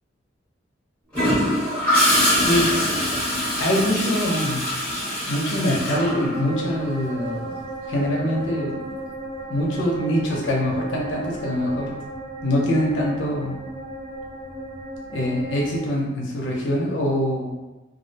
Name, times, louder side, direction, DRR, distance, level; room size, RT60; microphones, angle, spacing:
Gurgling / Toilet flush, 1.1-6.9 8.9-9.1, left 1 dB, 5° left, 0.9 m, -23 dB
voice 1, 2.4-3.0 3.6-4.7 5.3-8.8 9.5-12.0 12.4-13.6 15.1-17.5, equal, 80° left, -2 dB, 0.6 m, -24 dB
sound 1, 5.9-15.8, right 1 dB, 50° right, 0.6 m, -35 dB
2.4 x 2.1 x 2.7 m, 1.1 s
head